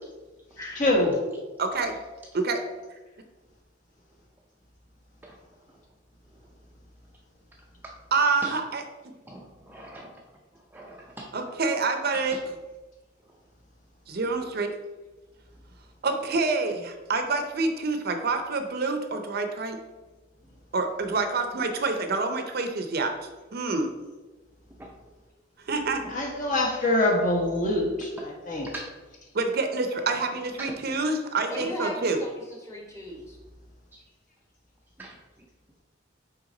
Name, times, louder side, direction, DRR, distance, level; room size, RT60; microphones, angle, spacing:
voice 1, 0.7-1.1 26.1-28.7, left 1 dB, 45° left, -1 dB, 1.3 m, -24 dB
voice 2, 1.6-2.0 2.3-2.6 8.1-8.8 11.3-12.4 14.1-14.7 16.0-19.8 20.7-23.1 23.5-23.9 25.7-26.0 29.3-32.2, right 3 dB, 55° right, 6 dB, 0.6 m, -27 dB
voice 3, 9.2-10.3 10.5-11.3 12.1-12.4 13.3-13.4 14.2-14.3 24.7-25.1 26.0-26.1 28.2-28.3 28.7-28.9 30.0-30.1 30.6-31.0 31.6-31.7 33.9-34.0 35.0-35.5, right 1 dB, 10° right, -1 dB, 0.5 m, -43 dB
voice 4, 31.5-33.4, left 1 dB, 15° left, -1 dB, 1.2 m, -37 dB
5.9 x 4.6 x 3.8 m, 1.2 s
head